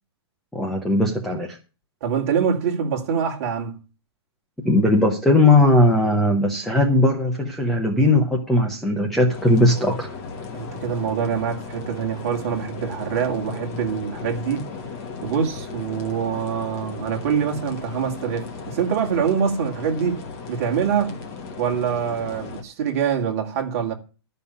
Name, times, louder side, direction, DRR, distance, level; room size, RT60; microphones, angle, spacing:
voice 1, 0.5-1.6 4.6-10.1, left 1 dB, ahead, 0.7 m, -18 dB
voice 2, 2.0-3.8 10.5-14.7 15.2-20.2 20.5-21.2 21.6-23.9, right 7 dB, 35° right, 2.4 m, -24 dB
sound 1, 9.3-22.6, left 4 dB, 20° left, 1.4 m, -36 dB
12.5 x 5.6 x 8.4 m
hypercardioid pair, 175°, 14 cm